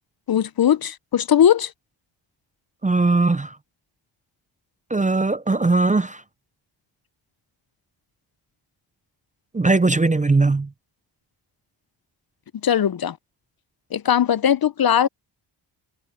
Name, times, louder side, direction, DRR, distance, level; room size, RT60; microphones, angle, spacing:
voice 1, 0.3-1.7 12.6-13.2 13.9-15.1, left 9 dB, 50° left, 0.7 m, -19 dB
voice 2, 2.8-3.5 4.9-6.2 9.5-10.7, right 3 dB, 15° right, 0.6 m, -19 dB
cardioid pair, 65°, 48 cm